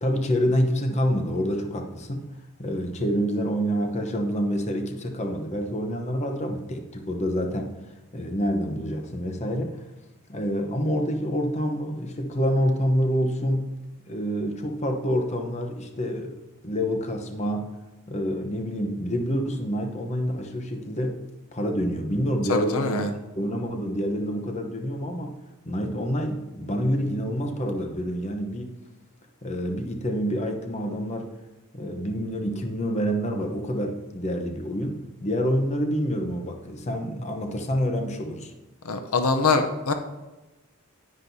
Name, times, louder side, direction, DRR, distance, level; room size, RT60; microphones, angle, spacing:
voice 1, 0.0-2.3 2.6-7.8 8.1-9.8 10.3-13.7 14.1-16.3 16.6-17.7 18.1-21.2 21.5-23.1 23.3-25.4 25.7-28.7 29.4-31.3 31.7-38.5, equal, 30° left, 3 dB, 0.8 m, -27 dB
voice 2, 22.5-23.1 38.8-39.9, left 4 dB, 80° left, 6 dB, 0.7 m, -23 dB
10.0 x 9.6 x 2.7 m, 1.1 s
head